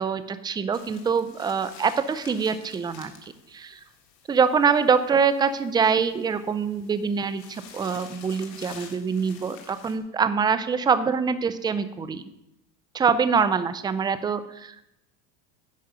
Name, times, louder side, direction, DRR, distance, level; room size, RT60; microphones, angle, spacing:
voice 1, 0.0-3.1 3.5-3.8 4.3-12.2 12.9-14.8, right 6 dB, 10° right, 12 dB, 0.4 m, -24 dB
sound 1, 0.7-10.0, left 7 dB, 85° left, 1.7 m, -49 dB
10.5 x 5.0 x 6.7 m, 0.85 s
supercardioid pair, 100°, 49 cm